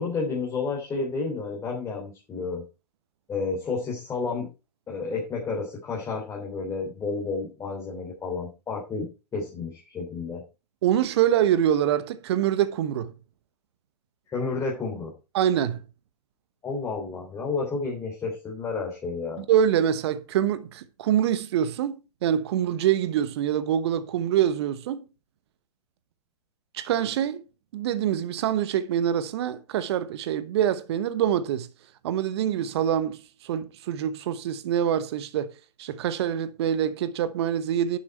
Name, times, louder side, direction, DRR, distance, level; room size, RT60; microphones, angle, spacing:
voice 1, 0.0-2.6 3.3-4.5 4.9-9.1 9.3-10.4 14.3-15.1 16.6-19.4, left 4 dB, 15° left, 3.2 m, -31 dB
voice 2, 10.8-13.1 15.3-15.8 19.4-25.0 26.7-27.4 27.7-31.7 32.0-35.5 35.8-38.0, right 10 dB, 40° right, 1.1 m, -25 dB
11.0 x 7.1 x 4.3 m
figure-of-eight pair, 125°, 21 cm